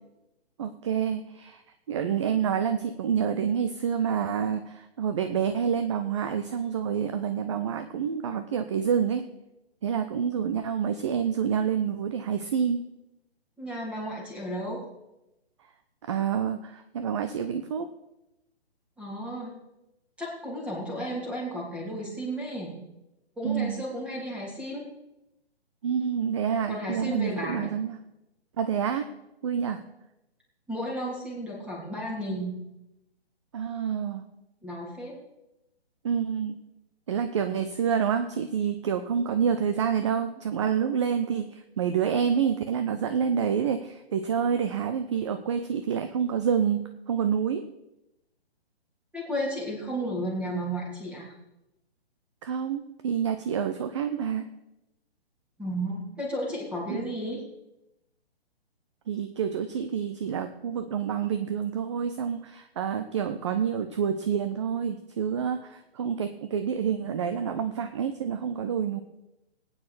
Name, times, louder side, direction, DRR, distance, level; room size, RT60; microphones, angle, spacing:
voice 1, 0.6-1.6 1.9-9.3 9.8-12.9 16.0-17.9 23.4-23.8 25.8-28.0 28.6-29.1 29.4-29.8 33.5-34.2 36.0-36.6 37.1-47.7 52.4-54.5 56.9-57.1 59.1-69.0, right 7 dB, 30° right, 9 dB, 0.6 m, -28 dB
voice 2, 13.6-14.8 19.0-19.5 20.2-22.8 23.4-24.8 26.7-27.7 30.7-32.6 34.6-35.2 49.1-51.3 55.6-57.4, equal, 5° right, -3 dB, 2.9 m, -33 dB
19.0 x 8.9 x 4.8 m, 0.93 s
figure-of-eight pair, 135°, 32 cm